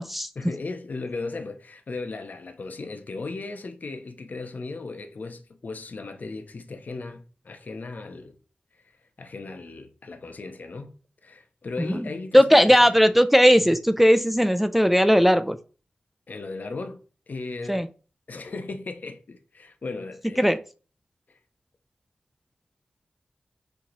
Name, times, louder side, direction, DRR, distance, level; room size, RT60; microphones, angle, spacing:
voice 1, 0.4-8.3 8.8-8.9 9.2-11.0 11.2-12.8 16.3-17.8 18.3-20.6 21.3-21.4, left 3 dB, 60° left, 0.7 m, -36 dB
voice 2, 12.3-15.6 17.7-17.9 20.4-20.6, equal, 5° right, 0.3 m, -18 dB
4.6 x 2.9 x 3.9 m
wide cardioid pair, 80°, 3 cm